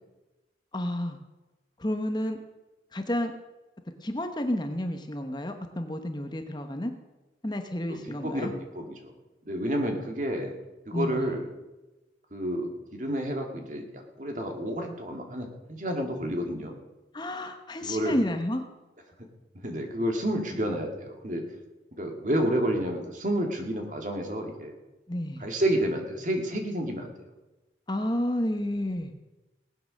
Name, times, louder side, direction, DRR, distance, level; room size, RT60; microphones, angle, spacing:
voice 1, 0.7-1.2 1.8-2.4 2.9-3.3 4.0-6.9 7.4-8.5 10.9-11.3 17.1-18.6 25.1-25.5 27.9-29.1, left 1 dB, 25° left, 6 dB, 1.0 m, -30 dB
voice 2, 7.9-9.1 9.5-10.5 10.9-11.4 12.3-16.7 17.8-18.2 19.6-21.4 22.0-24.7 25.4-27.1, equal, 45° right, 3 dB, 2.2 m, -30 dB
19.0 x 8.8 x 6.4 m, 1.1 s
head